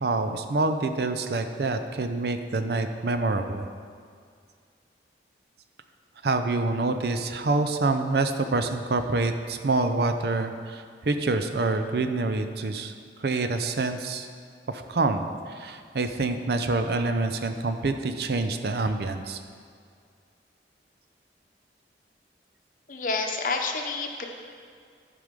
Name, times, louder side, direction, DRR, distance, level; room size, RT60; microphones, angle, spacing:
voice 1, 0.0-3.7 6.2-12.9 13.2-14.3 14.7-19.4, right 3 dB, 60° right, 7 dB, 0.5 m, -26 dB
voice 2, 22.9-24.3, left 4 dB, 45° left, 3 dB, 0.8 m, -29 dB
11.0 x 5.0 x 5.2 m, 2.1 s
head